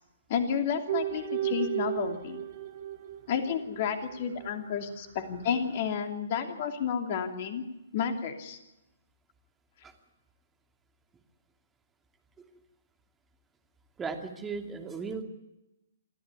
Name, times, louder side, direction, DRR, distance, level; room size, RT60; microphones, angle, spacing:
voice 1, 0.3-2.4 3.3-7.7 7.9-8.6, left 7 dB, 45° left, 6 dB, 2.9 m, -31 dB
sound 1, 0.9-3.8 4.1-4.6, right 12 dB, 50° right, 2.2 m, -34 dB
voice 2, 14.0-15.2, right 5 dB, 15° right, 5 dB, 2.6 m, -36 dB
28.0 x 13.0 x 9.6 m, 0.97 s
figure-of-eight pair, 130°, 0 cm